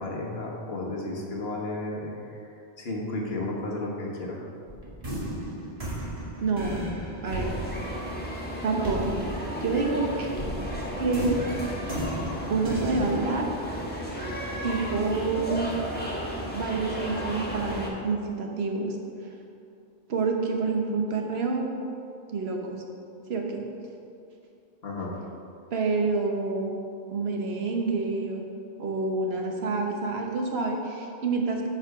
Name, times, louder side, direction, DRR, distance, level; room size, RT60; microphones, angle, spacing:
voice 1, 0.0-4.5 24.8-25.1, left 2 dB, 70° left, -1 dB, 1.5 m, -33 dB
sound 1, 4.7-10.0 10.4-13.1, equal, 35° right, 1.7 m, -35 dB
voice 2, 6.4-6.9 7.2-7.5 8.6-9.2 9.6-10.3 11.0-11.4 12.5-13.5 14.6-15.8 16.5-19.0 20.1-21.7 22.3-22.8 23.3-23.6 25.7-26.7 27.1-28.4 28.8-31.7, right 3 dB, 75° right, 1 dB, 1.3 m, -28 dB
sound 2, 7.2-17.9, equal, 10° left, 1.3 m, -34 dB
8.8 x 6.1 x 4.8 m, 2.6 s
omnidirectional pair, 1.1 m